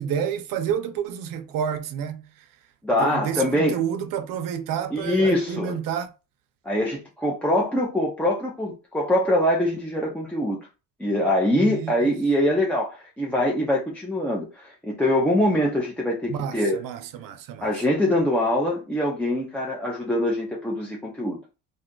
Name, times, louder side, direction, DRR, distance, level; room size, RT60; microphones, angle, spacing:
voice 1, 0.0-2.5 2.9-6.1 11.5-12.2 16.3-17.8, right 8 dB, 65° right, 0.6 m, -30 dB
voice 2, 2.8-3.8 4.9-5.8 6.6-10.6 11.0-16.8 17.6-21.4, left 1 dB, 5° left, 0.4 m, -23 dB
2.6 x 2.3 x 3.7 m
cardioid pair, 155°, 36 cm